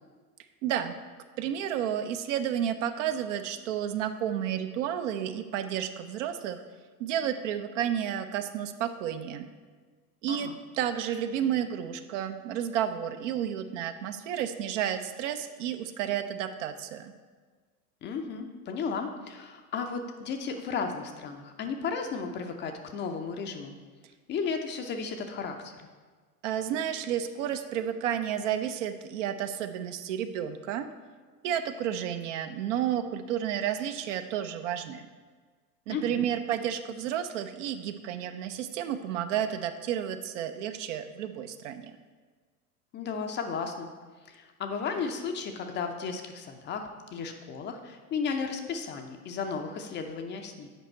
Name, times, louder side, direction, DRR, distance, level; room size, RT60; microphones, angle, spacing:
voice 1, 0.6-1.0 1.4-6.6 7.0-9.5 10.2-10.5 10.7-17.1 26.4-30.9 31.4-35.1 35.9-41.9, right 10 dB, 55° right, 9 dB, 0.6 m, -31 dB
voice 2, 18.0-23.7 24.3-25.9 35.9-36.2 42.9-43.9 44.2-50.7, left 5 dB, 25° left, 5 dB, 0.5 m, -34 dB
8.1 x 5.0 x 4.3 m, 1.5 s
figure-of-eight pair, 85°, 46 cm